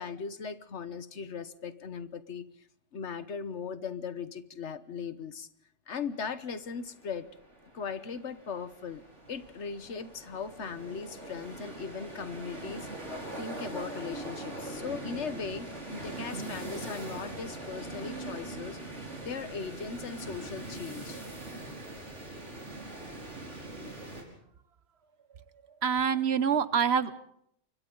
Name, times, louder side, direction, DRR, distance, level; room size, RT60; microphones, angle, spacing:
voice 1, 0.0-2.4 2.9-5.5 5.9-7.3 7.7-9.0 9.3-18.8 19.2-21.2, left 5 dB, 75° left, 13 dB, 1.4 m, -38 dB
sound 1, 6.1-24.2, right 2 dB, 85° right, 5.6 m, -42 dB
voice 2, 25.8-27.2, right 7 dB, 65° right, 14 dB, 1.2 m, -26 dB
29.0 x 24.5 x 3.9 m, 0.73 s
omnidirectional pair, 1.2 m